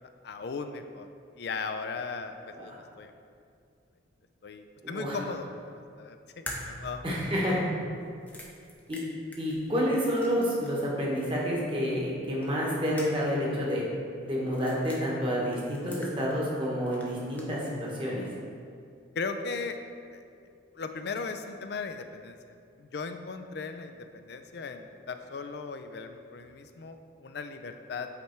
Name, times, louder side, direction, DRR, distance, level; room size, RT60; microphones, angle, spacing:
voice 1, 0.2-1.1 1.4-3.1 4.4-5.5 5.7-7.0 19.2-19.8 20.1-20.2 20.7-22.4 22.8-28.1, left 4 dB, 55° left, 8 dB, 0.4 m, -37 dB
voice 2, 4.8-5.2 7.0-7.6 8.9-9.0 9.4-13.8 14.2-18.3, equal, 25° right, -5 dB, 1.3 m, -29 dB
sound 1, 6.5-10.9 11.2-11.3 12.4-13.4 13.7-13.8 14.5-15.0 15.5-16.6 16.9-17.7, left 1 dB, 10° left, 0.6 m, -45 dB
8.3 x 3.4 x 4.5 m, 2.4 s
head